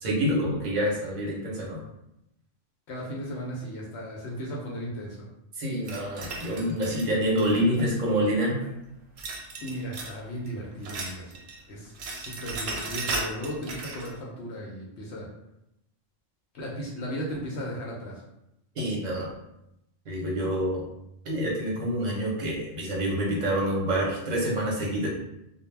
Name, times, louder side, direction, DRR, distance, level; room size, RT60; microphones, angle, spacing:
voice 1, 0.0-1.8 5.6-8.7 18.8-19.3 20.1-20.8 21.2-25.1, equal, 40° right, -4 dB, 0.7 m, -27 dB
voice 2, 2.9-5.3 9.6-11.4 11.7-15.3 16.5-18.2, equal, 65° left, -4 dB, 0.8 m, -36 dB
sound 1, 5.8-8.0 9.2-10.2 10.5-11.6 11.8-14.1, right 3 dB, 85° right, 1.0 m, -36 dB
2.2 x 2.0 x 3.2 m, 0.84 s
omnidirectional pair, 1.3 m